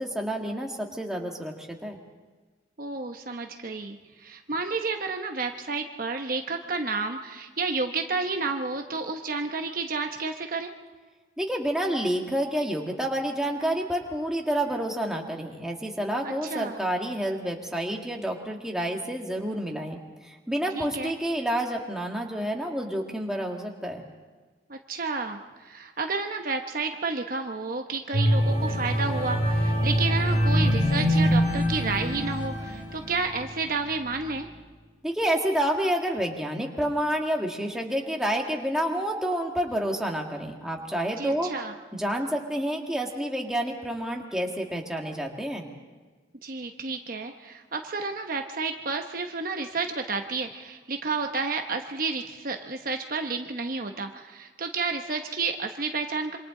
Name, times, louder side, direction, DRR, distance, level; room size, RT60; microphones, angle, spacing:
voice 1, 0.0-2.0 11.4-20.0 20.2-24.1 35.0-41.5 41.9-45.7, right 1 dB, 5° right, 0 dB, 1.9 m, -29 dB
voice 2, 2.8-10.7 16.2-16.8 20.7-21.1 24.7-34.5 41.2-41.7 46.4-56.4, right 4 dB, 50° right, 4 dB, 1.0 m, -31 dB
sound 1, 28.1-33.4 33.9-34.1, equal, 40° left, 7.6 m, -24 dB
27.0 x 25.0 x 3.8 m, 1.3 s
head